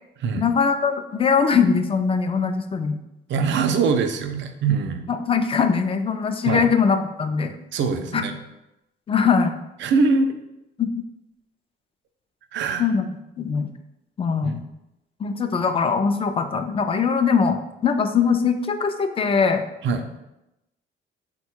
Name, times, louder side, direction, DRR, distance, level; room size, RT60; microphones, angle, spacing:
voice 1, 0.4-3.0 5.1-7.5 8.1-8.2 9.1-9.5 10.8-10.9 12.8-13.1 13.4-13.7 14.2-14.6 15.2-19.6, left 6 dB, 30° left, 8 dB, 0.4 m, -21 dB
voice 2, 3.3-5.1 6.4-6.7 7.7-8.3 9.8-10.3 12.5-12.9 14.4-14.6 19.8-20.0, right 4 dB, 65° right, 7 dB, 0.5 m, -22 dB
3.8 x 2.2 x 4.4 m, 0.91 s
cardioid pair, 90°, 20 cm